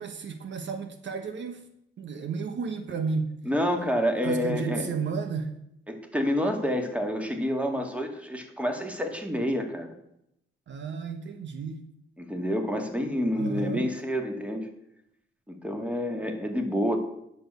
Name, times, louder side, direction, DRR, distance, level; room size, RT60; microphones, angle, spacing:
voice 1, 0.0-1.6 2.0-3.4 4.2-5.6 10.7-11.8 13.3-13.8, right 5 dB, 65° right, 7 dB, 1.2 m, -32 dB
voice 2, 3.4-4.9 5.9-9.9 12.2-14.7 15.5-17.0, equal, 5° right, 4 dB, 2.2 m, -28 dB
10.0 x 6.9 x 6.9 m, 0.78 s
cardioid pair, 90°, 20 cm